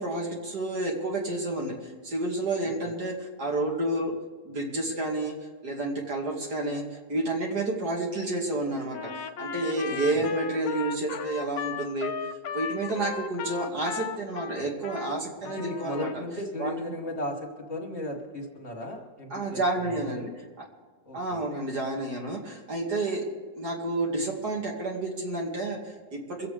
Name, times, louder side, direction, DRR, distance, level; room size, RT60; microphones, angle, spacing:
voice 1, 0.0-4.1 4.4-5.3 5.6-6.8 7.1-9.1 9.4-12.1 12.5-16.1 16.6-16.9 19.3-20.3 21.1-23.2 23.6-26.5, right 2 dB, 60° right, -1 dB, 3.0 m, -30 dB
voice 2, 2.6-2.9 9.9-10.3 15.4-20.3 21.1-21.4, left 1 dB, 40° left, 0 dB, 1.8 m, -36 dB
Trumpet, 8.9-15.1 15.4-16.2, left 7 dB, 70° left, 1.2 m, -36 dB
24.0 x 8.1 x 5.1 m, 1.4 s
omnidirectional pair, 1.9 m